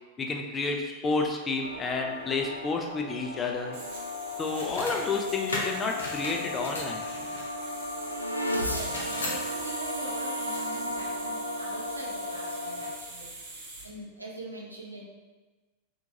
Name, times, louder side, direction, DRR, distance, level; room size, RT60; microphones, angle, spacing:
voice 1, 0.2-3.8 4.4-7.0, left 3 dB, 20° left, 3 dB, 0.4 m, -30 dB
sound 1, 1.5-13.9, right 2 dB, 50° right, 1.0 m, -43 dB
sound 2, 1.6-13.0, left 1 dB, 90° left, 0.3 m, -35 dB
sound 3, 4.4-5.0 5.5-7.5 8.5-9.4, left 2 dB, 70° left, 0.7 m, -36 dB
voice 2, 8.5-15.0, right 1 dB, 85° right, -3 dB, 0.6 m, -43 dB
3.5 x 2.9 x 2.6 m, 1.3 s
figure-of-eight pair, 90°, 0 cm